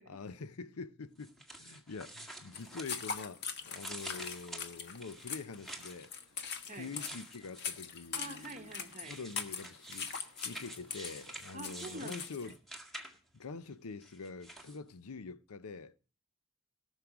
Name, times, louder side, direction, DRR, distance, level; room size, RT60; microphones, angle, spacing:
voice 1, 0.1-6.1 6.7-8.7 9.1-12.6 13.3-15.9, left 4 dB, 85° left, 0.7 m, -45 dB
sound 1, 1.2-3.3 3.7-6.1 6.8-7.8 8.4-13.4 14.0-14.8, right 1 dB, ahead, 1.9 m, -48 dB
sound 2, 2.5-12.6, left 6 dB, 50° left, 1.3 m, -42 dB
voice 2, 6.7-7.1 8.2-9.2 11.5-12.5, right 2 dB, 35° right, 1.1 m, -47 dB
18.0 x 6.5 x 5.9 m
head